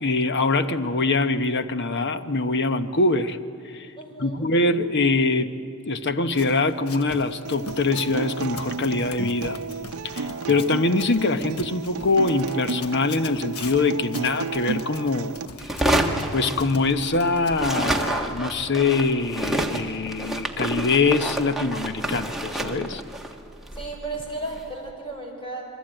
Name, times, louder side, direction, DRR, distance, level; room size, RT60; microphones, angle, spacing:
voice 1, 0.0-3.4 3.6-3.9 4.2-5.5 5.8-9.6 10.1-15.3 15.6-23.0, left 3 dB, 55° left, 10 dB, 1.0 m, -23 dB
voice 2, 4.0-4.4 23.7-25.6, right 2 dB, 25° left, 1 dB, 5.2 m, -34 dB
Run, 6.3-18.0, left 4 dB, 85° left, 1.2 m, -41 dB
Acoustic guitar, 7.4-15.5, right 4 dB, 80° right, 0.6 m, -33 dB
sound 1, 15.6-17.2 17.5-24.7, right 1 dB, ahead, 1.4 m, -28 dB
27.0 x 22.5 x 9.0 m, 2.4 s
head